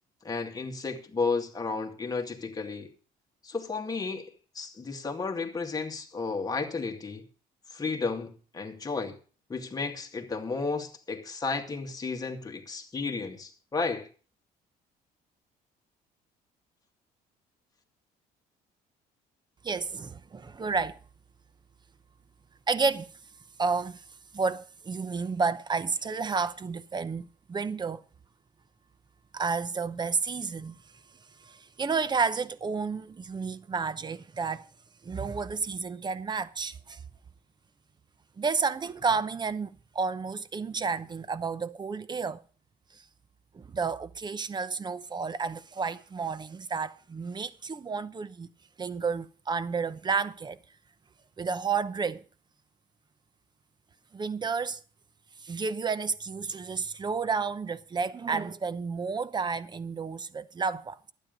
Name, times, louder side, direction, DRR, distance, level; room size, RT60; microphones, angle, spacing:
voice 1, 0.2-2.9 3.4-7.2 7.7-9.2 9.5-14.1, left 4 dB, 20° left, 2.1 m, -33 dB
voice 2, 19.6-21.0 22.7-23.1 23.6-24.0 24.3-28.0 29.3-30.8 31.4-34.7 35.0-37.0 38.4-42.4 42.9-43.0 43.5-48.5 48.8-50.6 51.4-52.2 54.1-54.8 55.4-61.1, right 5 dB, 25° right, 0.8 m, -31 dB
12.0 x 9.4 x 5.3 m
cardioid pair, 110°, 17 cm